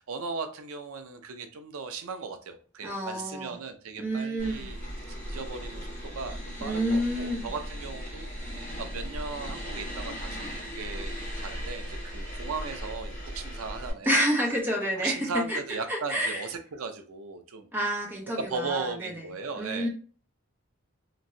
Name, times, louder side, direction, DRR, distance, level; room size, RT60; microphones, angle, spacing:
voice 1, 0.0-4.8 5.2-14.2 15.0-17.7 18.4-19.9, right 4 dB, 85° right, 7 dB, 0.5 m, -37 dB
voice 2, 2.8-3.5 4.0-4.7 6.6-7.5 14.1-15.6 15.9-16.4 17.7-19.1 19.6-19.9, equal, 10° right, -1 dB, 0.7 m, -28 dB
sound 1, 4.4-13.9, equal, 35° left, 1.4 m, -37 dB
3.0 x 2.6 x 2.6 m, 0.40 s
head